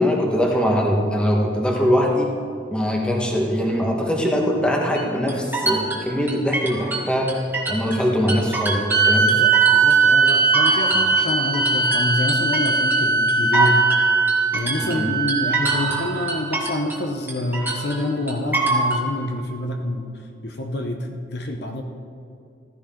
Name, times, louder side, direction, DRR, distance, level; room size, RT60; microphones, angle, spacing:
voice 1, 0.0-2.3 2.7-7.4 7.7-9.3 14.8-15.1, equal, 5° left, -1 dB, 1.6 m, -22 dB
sound 1, 5.0-8.0 8.3-10.0 10.3-17.0 17.3-19.0, right 3 dB, 10° right, 1.8 m, -25 dB
sound 2, 8.9-16.4, right 4 dB, 50° right, 1.8 m, -19 dB
voice 2, 9.2-13.8 14.5-21.8, left 1 dB, 55° left, 3 dB, 1.1 m, -27 dB
15.0 x 15.0 x 3.9 m, 2.4 s
head